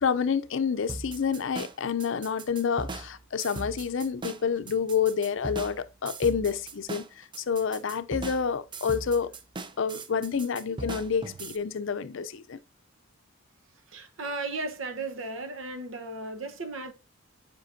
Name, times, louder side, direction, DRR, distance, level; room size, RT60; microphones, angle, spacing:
voice 1, 0.0-9.3 9.8-12.6, left 6 dB, 70° left, 0.5 m, -28 dB
sound 1, 0.9-11.6, right 3 dB, 25° right, 0.5 m, -39 dB
voice 2, 10.6-11.0 13.9-16.9, right 3 dB, 80° right, 1.0 m, -36 dB
7.4 x 5.1 x 2.6 m
head